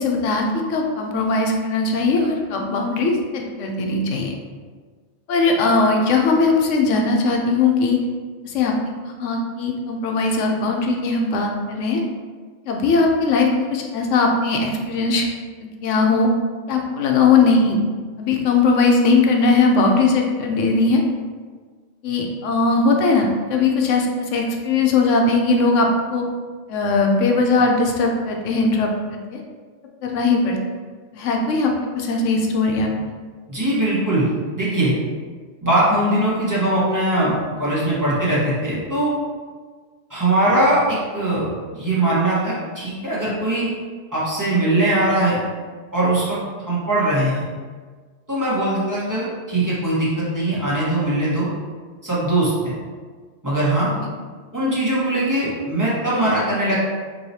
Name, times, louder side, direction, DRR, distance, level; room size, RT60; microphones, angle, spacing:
voice 1, 0.0-4.3 5.3-8.0 8.4-8.7 9.0-12.0 12.7-15.2 15.8-16.3 16.7-17.8 18.2-21.0 22.0-26.2 26.7-29.4 30.0-30.6 31.1-32.9, left 3 dB, 75° left, 1 dB, 0.9 m, -19 dB
voice 2, 33.5-34.3 34.5-34.9 35.6-39.1 40.1-41.5 41.7-43.7 44.1-45.4 45.9-46.4 46.7-47.5 48.3-51.5 52.0-52.7 53.4-53.9 54.5-56.8, right 1 dB, 15° right, -9 dB, 1.1 m, -20 dB
4.7 x 3.0 x 2.7 m, 1.5 s
omnidirectional pair, 1.3 m